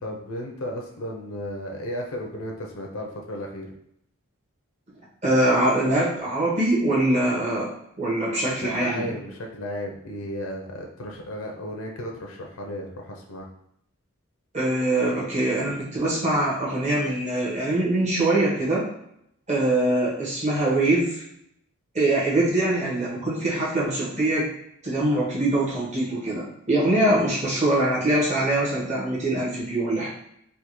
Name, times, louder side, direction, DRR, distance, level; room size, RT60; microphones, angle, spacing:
voice 1, 0.0-3.7 8.4-13.5, equal, 85° left, 1 dB, 0.6 m, -34 dB
voice 2, 5.2-7.7 8.0-9.1 14.5-18.9 19.5-21.2 21.9-24.5 24.8-30.1, right 1 dB, 35° right, -7 dB, 1.1 m, -23 dB
3.5 x 2.3 x 3.0 m, 0.74 s
head